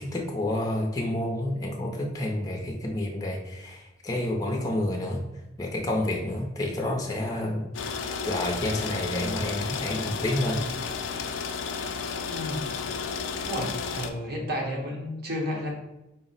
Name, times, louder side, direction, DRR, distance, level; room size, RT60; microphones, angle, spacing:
voice 1, 0.0-5.2 5.6-10.6, left 1 dB, 20° left, 0 dB, 0.5 m, -29 dB
sound 1, 7.7-14.1, left 5 dB, 90° left, 0.4 m, -32 dB
voice 2, 12.3-12.7 13.5-15.7, equal, 55° right, 0 dB, 0.8 m, -32 dB
4.1 x 2.0 x 3.9 m, 0.93 s
head